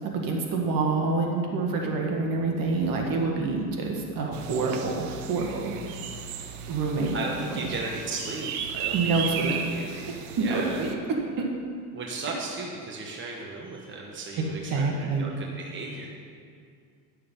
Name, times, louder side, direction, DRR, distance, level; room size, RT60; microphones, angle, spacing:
voice 1, 0.0-5.7 6.7-7.2 7.6-7.7 8.9-9.6 10.4-11.0 11.4-11.5 14.4-15.4, right 3 dB, 55° right, 0 dB, 1.8 m, -27 dB
sound 1, 4.3-10.9, right 7 dB, 90° right, 0.9 m, -36 dB
voice 2, 7.1-10.1 10.4-10.9 11.9-16.1, right 3 dB, 30° right, -1 dB, 1.2 m, -36 dB
11.0 x 6.7 x 5.5 m, 2.3 s
cardioid pair, 115°, 40 cm